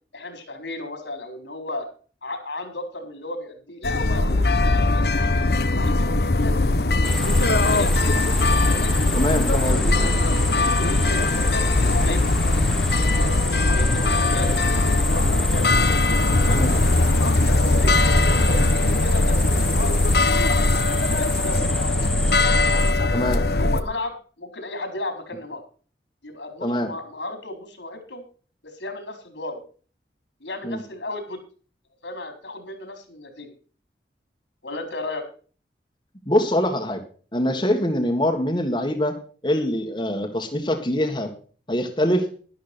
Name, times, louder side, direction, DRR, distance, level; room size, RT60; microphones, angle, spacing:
voice 1, 0.1-1.9 2.2-5.1 5.7-6.6 7.4-8.0 8.6-8.9 9.6-10.3 10.6-12.7 13.1-15.7 16.4-16.6 17.1-18.0 18.2-20.0 20.7-22.0 22.9-23.2 23.5-25.6 26.2-28.2 28.6-29.6 30.4-31.4 32.0-33.5 34.6-35.2, left 2 dB, 85° left, 6 dB, 4.3 m, -34 dB
sound 1, 3.8-23.8, left 2 dB, 65° left, 1.1 m, -20 dB
sound 2, 7.0-22.9, left 1 dB, 5° left, 0.5 m, -31 dB
voice 2, 9.1-10.1 16.5-16.7 23.1-23.4 26.6-26.9 30.6-30.8 36.3-37.0 37.3-39.2 39.4-41.3 41.7-42.3, left 1 dB, 25° left, 2 dB, 1.8 m, -23 dB
12.0 x 12.0 x 4.5 m, 0.40 s
head